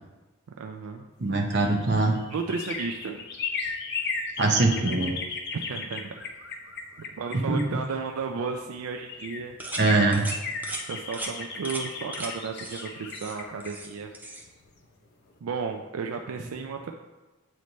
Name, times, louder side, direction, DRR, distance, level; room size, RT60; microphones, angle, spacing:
voice 1, 0.6-1.1 2.3-3.3 5.5-6.2 7.2-9.6 10.9-14.1 15.4-16.9, right 5 dB, 80° right, 4 dB, 0.4 m, -33 dB
voice 2, 1.2-2.1 4.4-5.1 7.5-7.6 9.8-10.3, right 3 dB, 55° right, 1 dB, 0.9 m, -22 dB
sound 1, 1.4-8.2 8.8-8.9 9.1-14.9 15.2-15.3, left 4 dB, 50° left, 0.6 m, -36 dB
sound 2, 9.6-9.9 10.1-10.4 10.6-10.8 11.1-11.3 11.6-11.8 12.1-12.3 12.6-12.8 13.1-13.9 14.1-14.4, right 2 dB, 10° right, 0.5 m, -36 dB
7.8 x 3.2 x 4.0 m, 1.1 s
head